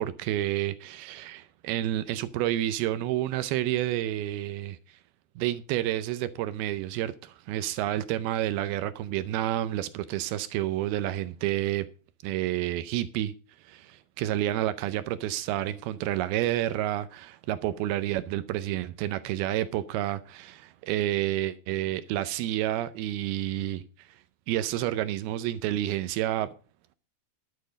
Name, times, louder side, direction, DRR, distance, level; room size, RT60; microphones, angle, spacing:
voice 1, 0.0-4.8 5.4-11.9 12.2-13.3 13.7-23.8 24.5-26.5, right 13 dB, 80° right, 2.2 m, -29 dB
11.5 x 8.6 x 5.0 m
omnidirectional pair, 5.0 m